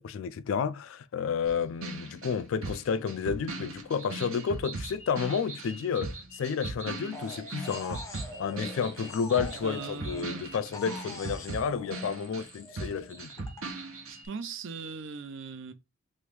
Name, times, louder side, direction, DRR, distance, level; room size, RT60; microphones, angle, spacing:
voice 1, 0.0-8.1 8.4-13.5, left 6 dB, 65° left, 0.3 m, -31 dB
sound 1, 1.4-5.7 6.0-12.5 12.8-14.2, right 3 dB, 80° right, 0.8 m, -39 dB
sound 2, 4.0-10.6 13.1-14.5, right 3 dB, 35° right, 1.2 m, -47 dB
sound 3, 7.1-10.4 10.7-13.6, left 2 dB, 15° left, 0.5 m, -45 dB
voice 2, 9.6-10.4 14.1-15.7, right 5 dB, 60° right, 0.5 m, -39 dB
3.1 x 2.5 x 3.3 m
head